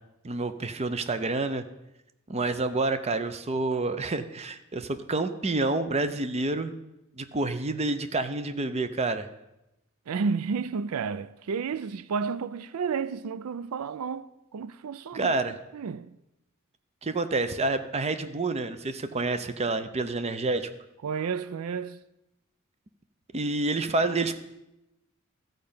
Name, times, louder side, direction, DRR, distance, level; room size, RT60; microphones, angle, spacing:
voice 1, 0.2-1.6 2.3-6.8 7.2-9.3 15.1-15.6 17.0-20.7 23.3-24.4, right 2 dB, 30° right, 0.7 m, -28 dB
voice 2, 10.1-14.3 14.5-15.3 15.7-16.1 21.0-22.0, right 5 dB, 85° right, 0.4 m, -31 dB
13.5 x 5.3 x 8.7 m
head